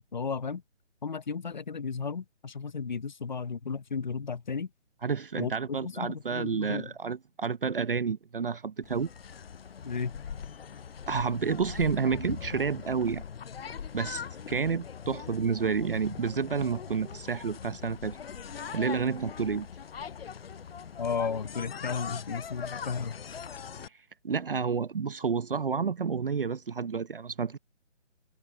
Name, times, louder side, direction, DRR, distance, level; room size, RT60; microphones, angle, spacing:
voice 1, 0.1-0.6 1.0-4.7 5.3-6.9 9.8-10.2 21.0-23.2, left 5 dB, 40° left, 0.9 m, -34 dB
voice 2, 5.0-9.1 11.1-13.2 13.9-18.2 18.7-19.6 24.2-27.6, right 5 dB, 50° right, 0.9 m, -30 dB
sound 1, 8.8-23.9, left 7 dB, 55° left, 0.5 m, -41 dB
hypercardioid pair, 170°, 35 cm